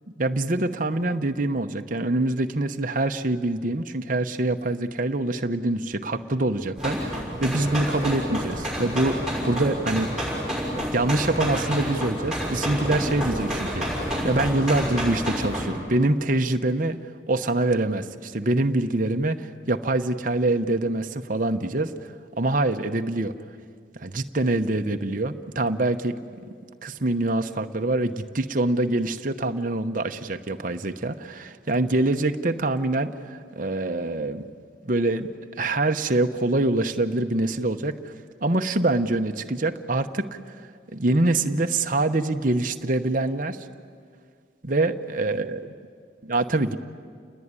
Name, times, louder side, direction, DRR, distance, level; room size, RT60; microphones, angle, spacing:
voice 1, 0.2-9.2 9.4-10.1 10.9-17.0 17.3-23.3 23.9-26.1 26.8-34.4 34.8-38.1 38.4-40.6 40.9-43.6 44.6-45.5 46.3-46.8, right 2 dB, 45° right, 6 dB, 0.9 m, -25 dB
sound 1, 6.8-15.7, equal, 5° right, 6.5 m, -29 dB
29.0 x 20.0 x 9.8 m, 2.1 s
head